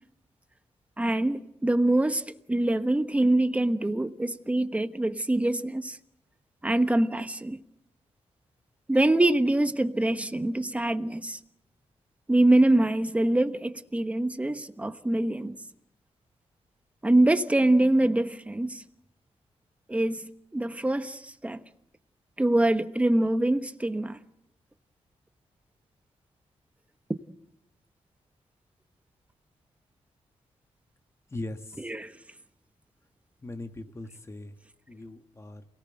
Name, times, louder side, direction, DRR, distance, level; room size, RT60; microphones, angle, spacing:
voice 1, 1.0-2.2 2.5-6.0 6.6-7.6 8.9-11.4 12.3-15.6 17.0-18.8 19.9-21.6 22.4-24.2 31.8-32.1, right 1 dB, 10° right, 1.1 m, -24 dB
voice 2, 31.3-31.8 33.4-34.5 34.9-35.6, left 2 dB, 25° left, 1.7 m, -39 dB
28.0 x 18.0 x 7.8 m
wide cardioid pair, 115°, 11 cm